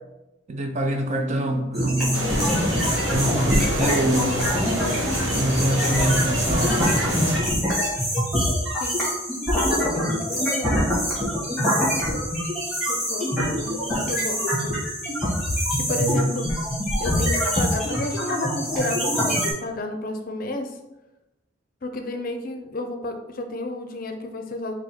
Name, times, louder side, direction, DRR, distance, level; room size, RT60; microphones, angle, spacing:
voice 1, 0.5-2.2 3.1-4.6 5.3-6.8 15.9-16.3, right 1 dB, 35° right, 5 dB, 0.5 m, -25 dB
sound 1, 1.7-19.5, equal, ahead, 1.4 m, -24 dB
voice 2, 2.0-2.3 8.8-9.0 9.8-10.8 12.9-14.7 15.8-16.5 17.0-19.3 19.6-20.7 21.8-24.7, left 2 dB, 45° left, 5 dB, 0.5 m, -31 dB
sound 2, 2.1-7.4, equal, 65° right, 1.1 m, -26 dB
4.8 x 2.3 x 4.3 m, 0.96 s
head